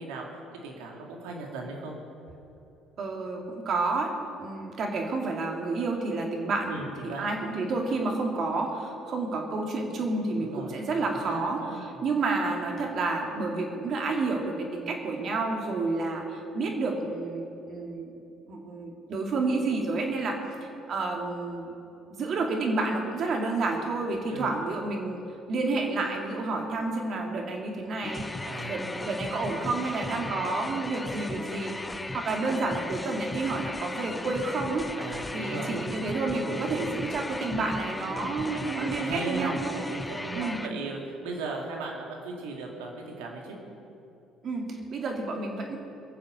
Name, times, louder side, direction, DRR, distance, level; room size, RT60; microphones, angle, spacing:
voice 1, 0.0-2.0 6.7-7.4 10.4-12.0 24.3-24.5 28.4-28.8 30.1-30.5 35.0-35.8 36.5-36.9 38.0-43.6, right 3 dB, 85° right, 0 dB, 2.5 m, -38 dB
voice 2, 3.0-4.1 4.4-18.1 18.5-20.4 20.9-21.7 22.1-25.2 25.5-28.2 28.6-31.8 32.1-34.8 35.3-39.8 40.3-40.6 44.4-45.8, right 3 dB, 55° right, 1 dB, 2.7 m, -30 dB
sound 1, 28.0-40.7, left 2 dB, 15° left, 0.6 m, -36 dB
21.5 x 7.5 x 6.9 m, 2.8 s
supercardioid pair, 70°, 0 cm